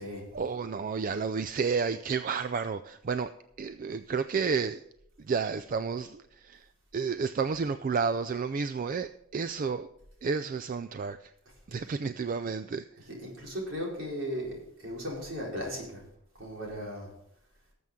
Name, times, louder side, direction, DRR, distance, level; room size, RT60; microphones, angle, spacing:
voice 1, 0.3-3.3 3.6-4.8 5.2-6.7 6.9-9.9 10.2-11.3 11.7-12.9, right 5 dB, 40° right, 11 dB, 0.3 m, -31 dB
voice 2, 13.2-16.0 16.4-17.1, equal, 65° right, -3 dB, 4.4 m, -36 dB
18.0 x 7.7 x 3.7 m, 0.77 s
head